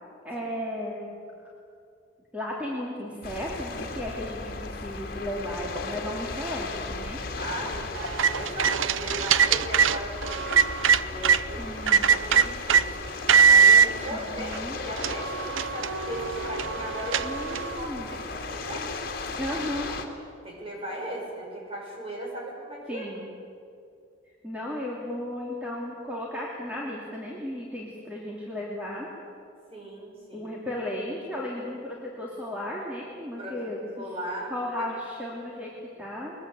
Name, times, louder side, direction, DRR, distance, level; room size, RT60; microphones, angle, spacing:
voice 1, 0.2-1.1 2.3-7.2 11.6-12.1 14.4-14.8 17.2-18.2 19.4-20.0 22.9-23.3 24.4-29.1 30.3-34.1 34.5-36.5, left 1 dB, 5° right, -4 dB, 2.8 m, -35 dB
sound 1, 3.2-20.1, left 3 dB, 50° left, 2.3 m, -36 dB
voice 2, 7.4-10.6 11.0-13.1 13.4-17.4 17.8-18.9 20.4-23.0 29.7-30.5 33.4-33.7 34.0-34.9, equal, 30° right, -1 dB, 6.4 m, -37 dB
sound 2, 8.0-11.4 11.9-12.8 13.3-13.9 14.5-14.6 15.0-17.8, right 6 dB, 85° right, 0.7 m, -21 dB
22.0 x 21.0 x 8.5 m, 2.4 s
head